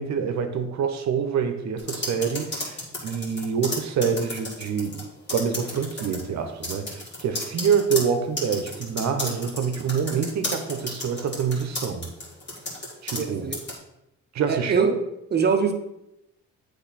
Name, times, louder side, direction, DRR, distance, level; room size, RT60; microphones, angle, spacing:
voice 1, 0.0-5.0 5.3-12.1 13.0-13.5 14.3-14.9, right 6 dB, 65° right, 7 dB, 0.9 m, -26 dB
sound 1, 1.8-5.0 5.3-6.2 6.6-13.3 13.5-13.8, left 2 dB, 35° left, 2.1 m, -32 dB
voice 2, 13.2-13.6 14.5-14.9 15.3-15.7, right 5 dB, 35° right, 5 dB, 0.9 m, -23 dB
7.8 x 3.3 x 4.2 m, 0.86 s
cardioid pair, 90°, 30 cm